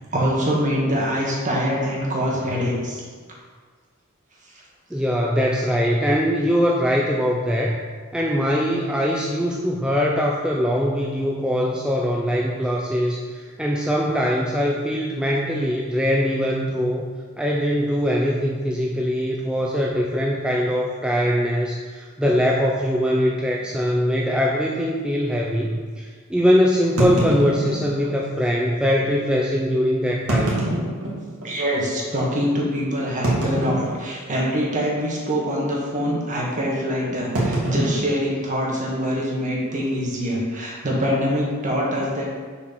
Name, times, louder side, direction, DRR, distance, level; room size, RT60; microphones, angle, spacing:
voice 1, 0.1-3.0 31.4-42.2, equal, 35° right, -3 dB, 1.9 m, -24 dB
voice 2, 4.9-7.8 8.1-17.0 17.4-30.6, equal, 5° right, -2 dB, 0.5 m, -22 dB
sound 1, 22.2-22.4 23.2-23.3 23.6-23.7 24.3-24.4 27.0-28.2 29.0-29.1 30.1-31.6 32.1-32.2 33.2-34.3 34.6-35.0 35.2-35.5 37.3-39.0, right 1 dB, 90° right, 2.0 m, -25 dB
7.0 x 4.8 x 5.9 m, 1.5 s
head